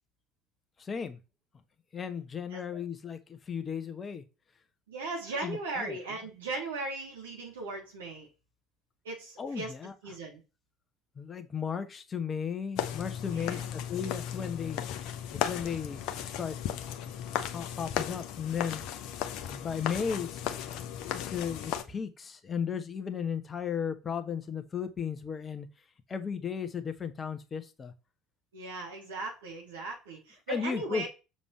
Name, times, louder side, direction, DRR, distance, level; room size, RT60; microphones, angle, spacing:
voice 1, 0.8-1.2 1.9-4.2 5.3-6.0 9.4-9.9 11.2-14.8 15.3-16.6 17.0-18.8 19.5-25.7 26.1-27.9 30.5-31.1, left 7 dB, 30° left, 9 dB, 1.3 m, -35 dB
voice 2, 4.9-8.3 9.0-9.7 10.0-10.4 13.3-13.7 28.5-31.1, right 2 dB, 75° right, -2 dB, 3.0 m, -38 dB
sound 1, 12.8-21.8, left 9 dB, 55° left, 1.0 m, -36 dB
7.1 x 6.9 x 3.3 m, 0.30 s
figure-of-eight pair, 60°, 0 cm